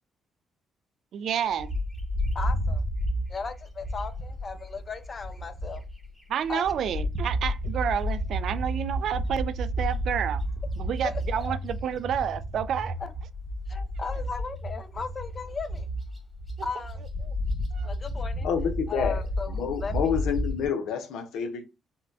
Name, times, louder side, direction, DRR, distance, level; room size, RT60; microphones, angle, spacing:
voice 1, 1.1-1.7 6.3-10.4 10.8-13.0 17.2-17.3 17.7-17.9, right 9 dB, 70° right, 0.3 m, -29 dB
Bird, 1.6-6.1 6.4-20.6, equal, ahead, 1.3 m, -31 dB
voice 2, 2.3-2.8 3.3-5.8 6.5-6.6 11.0-11.5 13.0-13.1 13.7-15.9 16.6-17.0 17.8-18.5 18.9-19.5 19.8-19.9, left 4 dB, 35° left, 0.5 m, -36 dB
voice 3, 18.4-21.6, left 7 dB, 85° left, 0.7 m, -29 dB
4.2 x 2.2 x 2.6 m
cardioid pair, 90°, 0 cm